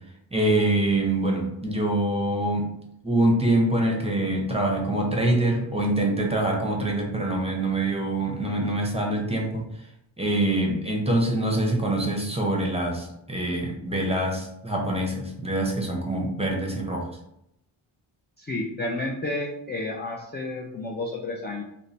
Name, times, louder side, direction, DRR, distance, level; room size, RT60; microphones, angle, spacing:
voice 1, 0.3-2.7 3.0-9.6 10.2-17.1, right 1 dB, 15° right, 0 dB, 0.6 m, -25 dB
voice 2, 18.4-21.6, left 2 dB, 25° left, -1 dB, 0.3 m, -31 dB
3.0 x 2.1 x 2.5 m, 0.80 s
wide cardioid pair, 75°, 49 cm